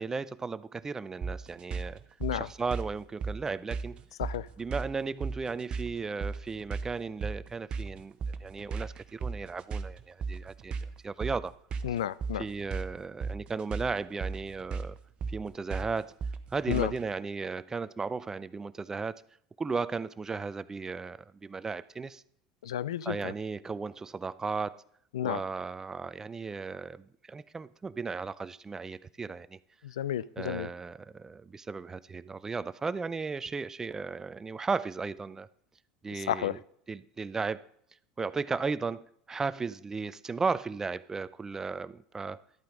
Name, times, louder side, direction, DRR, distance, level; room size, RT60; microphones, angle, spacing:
voice 1, 0.0-2.0 2.3-4.0 4.6-8.1 8.4-10.7 11.0-11.5 12.4-15.0 15.3-16.1 16.5-19.2 19.6-22.2 23.1-24.8 25.2-29.6 30.4-35.5 36.0-36.6 36.9-37.7 38.2-42.4, right 4 dB, 20° right, 0.4 m, -35 dB
sound 1, 1.2-17.1, right 5 dB, 40° right, 0.9 m, -36 dB
voice 2, 11.8-12.5 16.7-16.9 22.6-23.3 25.1-25.4 29.8-30.7 36.1-36.6, left 11 dB, 85° left, 0.3 m, -32 dB
12.0 x 8.6 x 3.8 m
hypercardioid pair, 90°, 3 cm